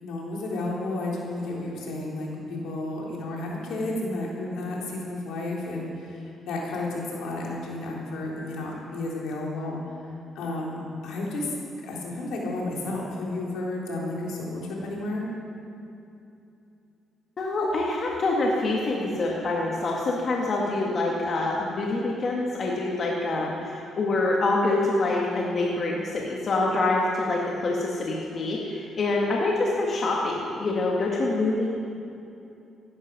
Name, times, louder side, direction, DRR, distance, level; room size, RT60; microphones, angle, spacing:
voice 1, 0.0-10.0 10.4-11.5 11.8-15.3, left 2 dB, 80° left, -3 dB, 3.6 m, -32 dB
voice 2, 17.4-31.7, left 2 dB, 50° left, -2 dB, 2.0 m, -26 dB
15.5 x 12.0 x 6.2 m, 2.7 s
cardioid pair, 90°, 0 cm